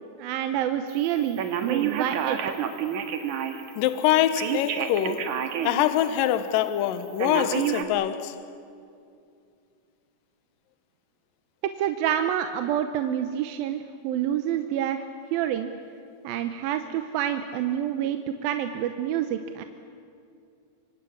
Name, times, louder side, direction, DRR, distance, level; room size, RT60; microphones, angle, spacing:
voice 1, 0.2-2.4 11.8-15.1 15.3-15.7 16.2-19.6, right 10 dB, 75° right, 2.6 m, -27 dB
Telephone, 1.4-3.7 4.4-5.8 6.3-6.4 7.2-7.8, right 9 dB, 60° right, 2.6 m, -28 dB
voice 2, 3.8-8.4, left 11 dB, 70° left, 2.5 m, -24 dB
25.5 x 25.0 x 8.6 m
omnidirectional pair, 4.5 m